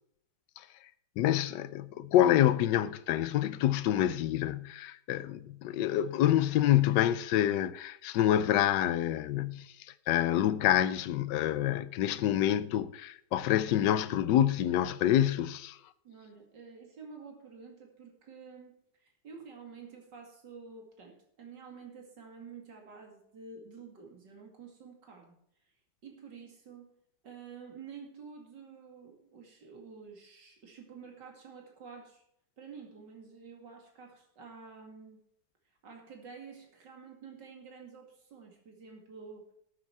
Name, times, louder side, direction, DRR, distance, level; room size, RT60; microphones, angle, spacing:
voice 1, 1.2-9.7 10.1-15.8, left 12 dB, 85° left, 1.3 m, -27 dB
voice 2, 16.0-25.4 26.0-26.9 27.2-32.2 32.6-35.2 35.8-39.5, right 5 dB, 90° right, 3.0 m, -49 dB
13.0 x 8.4 x 4.6 m
omnidirectional pair, 1.8 m